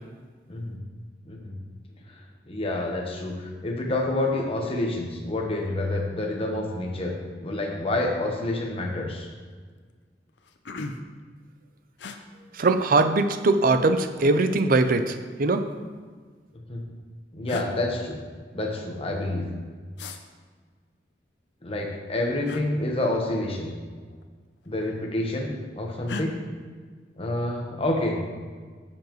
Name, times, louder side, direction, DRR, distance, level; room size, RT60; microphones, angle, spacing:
voice 1, 0.5-0.8 1.2-1.5 2.1-2.2 2.5-9.3 16.7-16.8 17.3-18.2 18.5-19.4 21.6-23.7 24.7-26.4 27.2-28.2, left 1 dB, 35° left, 0 dB, 1.2 m, -28 dB
sound 1, 8.3-8.5 8.9-9.3 9.9-10.0 10.3-11.2 12.0-12.2 13.4-14.1 15.2-16.1 17.0-17.1 17.5-17.7 20.0-20.2 22.4-22.7 24.0-24.3 24.6-25.2 26.1-26.3, left 3 dB, 80° left, 0.6 m, -38 dB
voice 2, 12.5-15.6, right 3 dB, 55° right, 9 dB, 0.5 m, -21 dB
9.5 x 7.2 x 3.1 m, 1.6 s
head